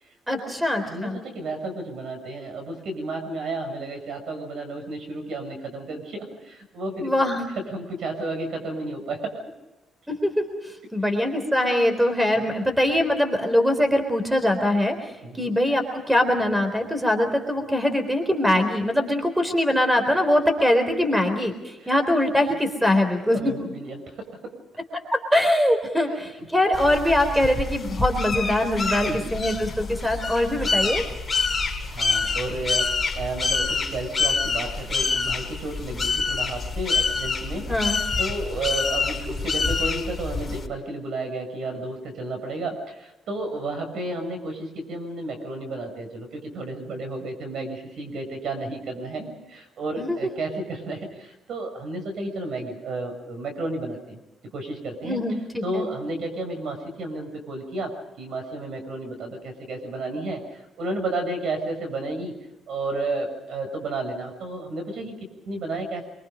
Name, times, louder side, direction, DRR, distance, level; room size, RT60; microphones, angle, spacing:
voice 1, 0.3-1.2 7.0-7.5 10.1-10.5 10.9-15.0 15.4-23.4 24.9-31.0 37.7-38.0 50.0-50.2 55.0-55.8, left 1 dB, 5° right, 6 dB, 3.8 m, -22 dB
voice 2, 0.8-7.1 7.6-9.4 12.4-12.6 15.2-15.5 20.1-20.2 21.1-21.2 21.8-21.9 23.3-24.6 26.4-26.5 28.9-29.3 31.8-54.2 54.5-55.2 55.6-62.4 62.7-66.1, right 2 dB, 70° right, 6 dB, 6.8 m, -32 dB
sound 1, 26.7-40.7, left 4 dB, 25° left, 4.7 m, -27 dB
26.5 x 24.0 x 5.2 m, 1.0 s
cardioid pair, 125°, 0 cm